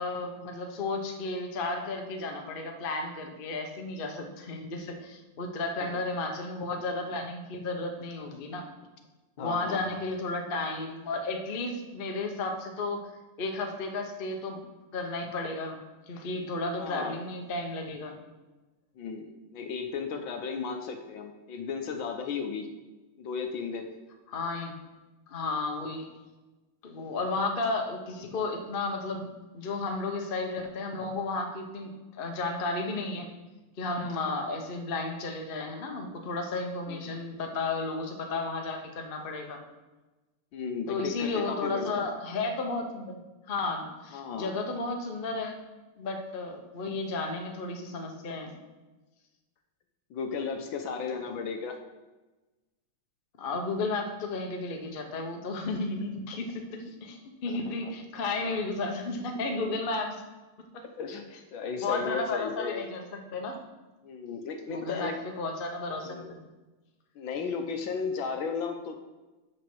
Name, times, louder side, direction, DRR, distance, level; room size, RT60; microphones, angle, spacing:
voice 1, 0.0-8.7 9.4-13.1 13.4-14.6 14.9-15.8 16.1-18.2 24.3-24.8 25.3-26.1 26.8-33.3 33.8-39.6 40.9-43.2 43.5-45.6 46.0-48.6 53.4-60.2 60.7-60.8 61.8-63.6 64.7-66.4, left 3 dB, 40° left, 3 dB, 0.7 m, -33 dB
voice 2, 9.4-10.0 16.8-17.2 19.0-22.7 23.2-23.9 34.1-34.3 36.9-37.2 40.5-42.1 44.1-44.5 50.1-51.8 57.5-57.9 58.4-58.5 61.0-62.9 64.0-65.2 66.0-66.3 67.1-68.9, left 5 dB, 70° left, 5 dB, 1.4 m, -35 dB
7.0 x 6.3 x 6.1 m, 1.1 s
omnidirectional pair, 2.4 m